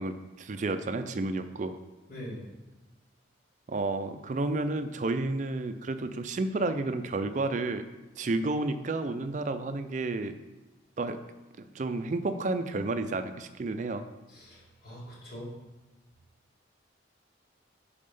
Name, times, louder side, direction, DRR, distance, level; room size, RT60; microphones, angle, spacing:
voice 1, 0.0-1.8 3.7-7.8 8.2-10.4 11.0-11.2 11.6-14.1, right 2 dB, 40° right, 9 dB, 0.4 m, -31 dB
voice 2, 2.1-2.5 14.3-15.6, equal, 50° left, -6 dB, 2.3 m, -42 dB
5.4 x 4.2 x 5.4 m, 1.1 s
head